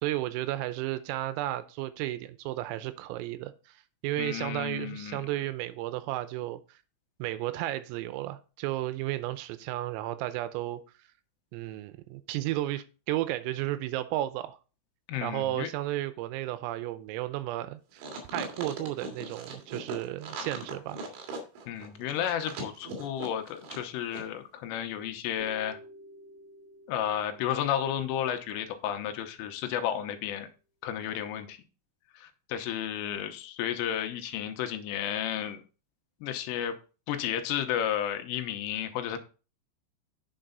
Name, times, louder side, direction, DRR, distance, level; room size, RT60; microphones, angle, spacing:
voice 1, 0.0-3.7 4.0-6.8 7.2-10.8 11.5-14.6 15.2-18.0 18.3-21.0, right 15 dB, 85° right, 3.4 m, -33 dB
voice 2, 4.2-5.2 15.1-15.7 21.7-25.8 26.9-30.5 30.8-31.6 32.1-35.6 36.2-36.8 37.1-39.2, left 10 dB, 85° left, 3.4 m, -32 dB
sound 1, 18.0-23.9 24.1-24.2, right 3 dB, 65° right, 4.0 m, -39 dB
sound 2, 25.4-29.4, equal, 45° left, 2.5 m, -53 dB
8.8 x 6.7 x 3.9 m
omnidirectional pair, 5.9 m